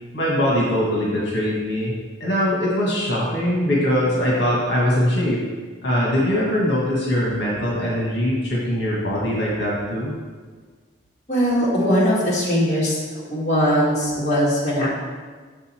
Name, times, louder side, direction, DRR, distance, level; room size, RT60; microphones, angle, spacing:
voice 1, 0.1-1.9 2.2-5.4 5.8-10.1, equal, 70° left, -5 dB, 1.7 m, -22 dB
voice 2, 11.3-13.0 13.3-14.9, equal, 35° left, -7 dB, 2.0 m, -20 dB
6.9 x 5.4 x 4.4 m, 1.5 s
head